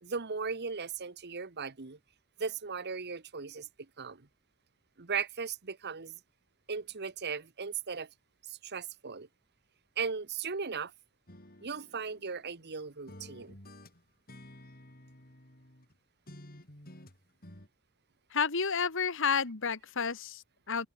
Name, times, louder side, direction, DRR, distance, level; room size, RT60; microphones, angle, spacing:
voice 1, 0.0-2.0 2.4-4.3 5.0-6.2 6.7-8.1 8.4-9.3 10.0-10.9 11.6-13.6, right 5 dB, 50° right, 1.1 m, -37 dB
sound 1, 11.3-12.8 13.1-15.9 16.3-17.7, left 1 dB, 40° left, 5.3 m, -52 dB
voice 2, 18.3-20.9, left 6 dB, 60° left, 1.6 m, -31 dB
open air
head